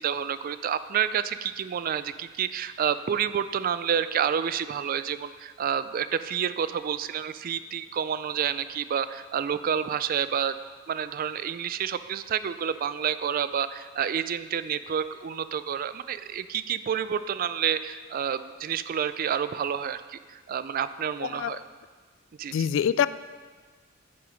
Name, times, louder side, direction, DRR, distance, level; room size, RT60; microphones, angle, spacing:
voice 1, 0.0-10.6 10.9-21.6 22.4-22.7, right 8 dB, 45° right, 13 dB, 0.3 m, -29 dB
voice 2, 22.5-23.1, left 8 dB, 65° left, 16 dB, 0.3 m, -24 dB
9.6 x 5.6 x 5.1 m, 1.5 s
head